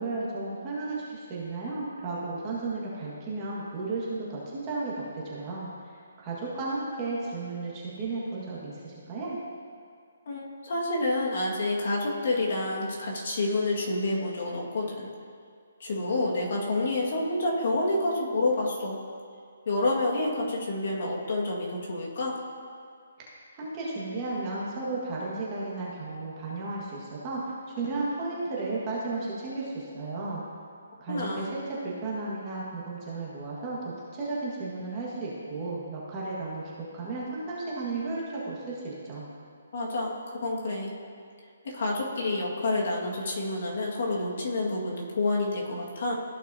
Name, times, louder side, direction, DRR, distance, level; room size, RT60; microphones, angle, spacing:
voice 1, 0.0-5.7 6.2-9.4 23.5-27.4 27.8-30.4 31.0-36.6 36.9-39.2, right 3 dB, 20° right, -6 dB, 1.6 m, -34 dB
voice 2, 10.3-15.1 15.8-19.0 19.7-22.4 31.1-31.5 39.7-40.9 41.7-46.1, left 2 dB, 55° left, -2 dB, 1.8 m, -28 dB
14.5 x 6.0 x 2.8 m, 2.2 s
hypercardioid pair, 165°, 0 cm